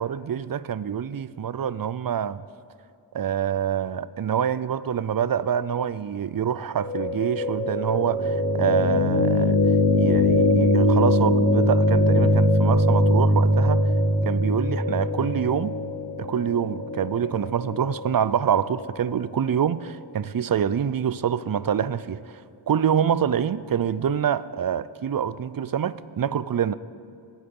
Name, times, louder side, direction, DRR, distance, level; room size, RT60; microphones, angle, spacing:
voice 1, 0.0-2.4 3.1-9.6 9.9-13.8 14.2-15.7 16.2-22.2 22.7-26.7, right 8 dB, 50° right, 17 dB, 0.4 m, -26 dB
sound 1, 6.7-18.8, left 1 dB, 25° left, 2.8 m, -22 dB
19.5 x 8.9 x 5.4 m, 2.4 s
wide cardioid pair, 60°, 47 cm